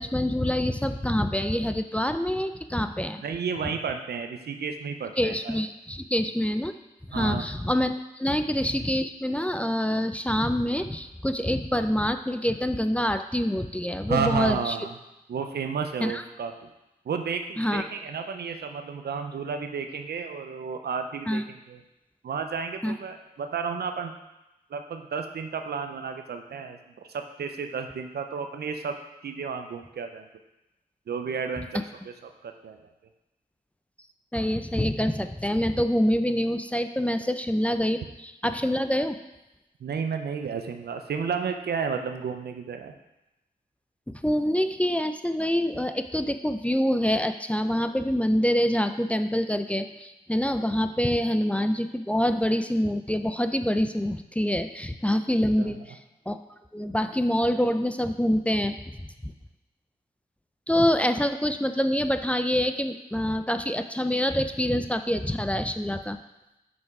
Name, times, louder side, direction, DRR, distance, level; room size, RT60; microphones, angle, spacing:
voice 1, 0.0-3.2 5.2-6.7 7.1-14.8 16.0-16.2 17.6-17.9 21.3-21.4 22.8-22.9 34.3-39.2 44.1-56.0 56.3-56.4 56.7-58.8 59.2-59.3 60.7-66.2, equal, 10° left, 8 dB, 0.5 m, -26 dB
voice 2, 3.2-5.6 7.1-7.5 8.3-8.4 14.1-14.9 15.3-16.7 17.1-21.8 22.2-24.1 24.7-28.9 29.2-30.3 31.1-32.9 39.8-43.0 55.6-55.8, right 6 dB, 85° right, 6 dB, 0.6 m, -32 dB
5.5 x 5.5 x 4.8 m, 0.96 s
cardioid pair, 45°, 16 cm